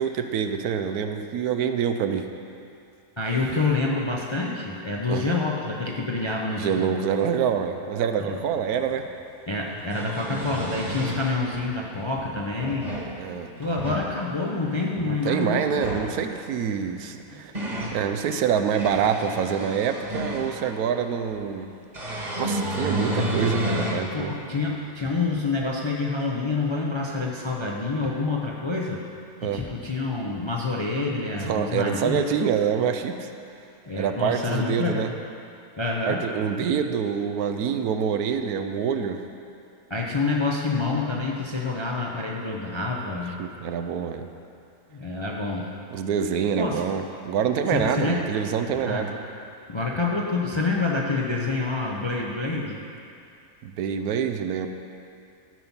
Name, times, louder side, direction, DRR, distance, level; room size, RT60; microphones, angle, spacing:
voice 1, 0.0-2.3 5.1-5.3 6.6-9.1 13.2-13.5 15.0-17.5 17.9-21.7 22.4-24.3 29.4-29.6 31.4-33.3 34.0-35.1 36.1-39.2 43.4-44.3 45.9-49.1 53.6-54.7, right 7 dB, 80° right, 7 dB, 1.1 m, -26 dB
voice 2, 3.2-6.9 8.2-8.4 9.5-12.9 13.6-15.9 24.1-29.0 29.4-32.2 33.9-35.1 35.8-36.3 39.9-43.3 44.9-45.7 46.6-46.8 47.7-48.2 48.8-49.1 49.7-52.8, left 3 dB, 35° left, -1 dB, 0.5 m, -27 dB
sound 1, 8.7-8.8 9.7-11.3 12.4-13.1 13.6-14.1 15.6-16.1 17.1-18.0 18.5-20.7 21.9-24.1 24.6-24.7 26.2-26.3, equal, 30° right, 1.4 m, -30 dB
12.5 x 5.9 x 5.5 m, 2.5 s
omnidirectional pair, 1.6 m